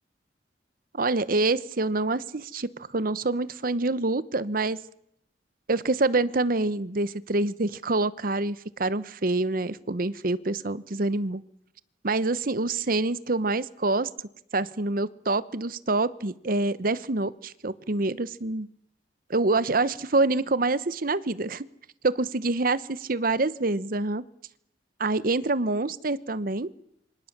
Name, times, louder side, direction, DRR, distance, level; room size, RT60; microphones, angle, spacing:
voice 1, 0.9-4.8 5.7-11.4 12.0-14.1 14.5-18.7 19.3-21.7 22.0-22.8 23.1-24.2 25.0-26.7, right 2 dB, 50° right, 17 dB, 0.9 m, -26 dB
27.5 x 25.0 x 7.3 m, 0.76 s
head